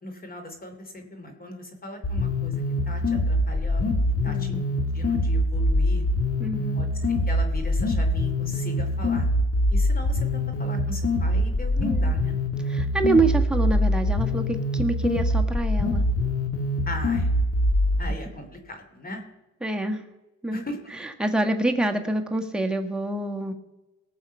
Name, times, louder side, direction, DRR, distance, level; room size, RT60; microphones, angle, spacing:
voice 1, 0.0-3.9 4.2-4.6 4.9-6.0 6.7-9.3 9.7-11.7 12.0-12.3 16.9-17.3 18.0-19.2 20.5-20.9, left 1 dB, 30° left, 6 dB, 2.8 m, -38 dB
sound 1, 2.0-18.0, left 1 dB, 50° left, 2.0 m, -24 dB
voice 2, 4.3-4.7 6.4-6.9 11.8-12.1 12.6-16.1 19.6-20.0 20.4-20.6 20.9-23.5, right 2 dB, 5° right, 3 dB, 1.5 m, -26 dB
19.0 x 6.9 x 5.5 m, 1.1 s
cardioid pair, 90°, 30 cm